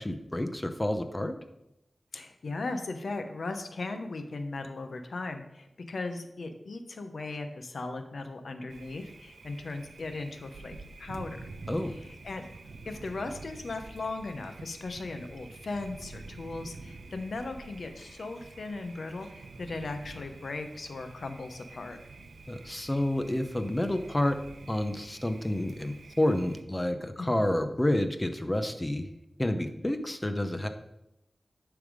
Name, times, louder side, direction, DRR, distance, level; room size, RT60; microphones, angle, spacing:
voice 1, 0.0-1.4 11.7-11.9 22.5-24.4 24.7-29.1 29.4-30.7, left 1 dB, 20° left, 8 dB, 0.8 m, -29 dB
voice 2, 2.1-11.4 11.9-12.5 12.8-22.0 27.2-27.4, left 3 dB, 75° left, 7 dB, 0.8 m, -38 dB
Thunder, 8.7-26.6, right 3 dB, 85° right, 0.6 m, -48 dB
10.0 x 3.5 x 5.0 m, 0.88 s
wide cardioid pair, 65°, 0 cm